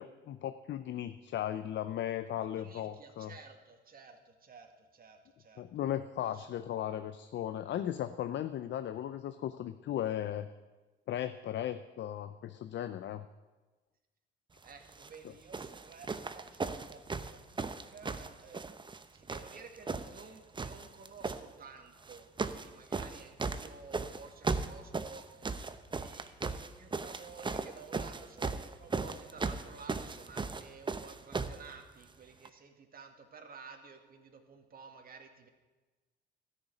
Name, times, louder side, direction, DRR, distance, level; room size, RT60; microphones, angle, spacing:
voice 1, 0.0-3.3 5.6-10.5 11.1-13.2 15.2-15.3, left 11 dB, 65° left, 11 dB, 0.6 m, -36 dB
voice 2, 2.4-5.9 6.2-6.4 14.6-16.1 16.3-18.6 19.1-25.6 26.0-35.5, right 5 dB, 45° right, 4 dB, 2.0 m, -53 dB
sound 1, 14.9-15.1 15.5-19.0 19.3-20.3 20.5-21.4 22.0-22.7 22.9-31.6 32.4-32.5, right 4 dB, 25° right, 0.8 m, -37 dB
13.0 x 6.9 x 9.4 m, 1.2 s
cardioid pair, 90°, 20 cm